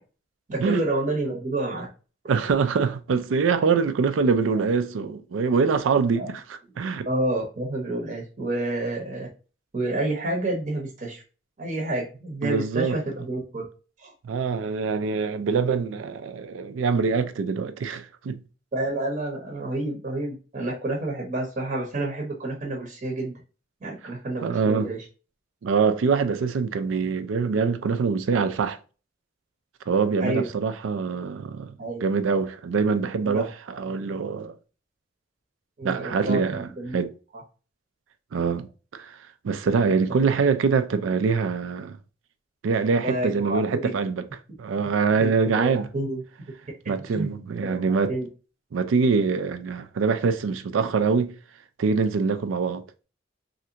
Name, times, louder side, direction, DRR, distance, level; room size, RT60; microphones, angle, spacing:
voice 1, 0.5-1.9 6.2-6.3 7.0-9.3 9.7-11.2 11.6-13.6 14.0-14.1 18.7-23.3 23.8-25.1 30.2-30.5 31.8-32.0 33.2-33.5 35.8-36.4 36.8-37.0 40.2-40.4 43.0-43.9 45.2-46.2 47.1-47.3 47.6-47.8 48.1-48.3, right 2 dB, 45° right, 0.7 m, -29 dB
voice 2, 2.3-6.4 6.8-7.1 12.4-13.0 14.2-18.4 24.4-24.9 25.6-28.8 29.9-31.7 32.0-33.5 33.8-34.5 35.8-37.1 38.3-39.1 39.4-42.0 42.6-44.3 44.6-45.9 46.9-48.2 48.7-51.3 51.8-52.8, right 5 dB, 80° right, 0.4 m, -24 dB
3.2 x 2.5 x 2.8 m
head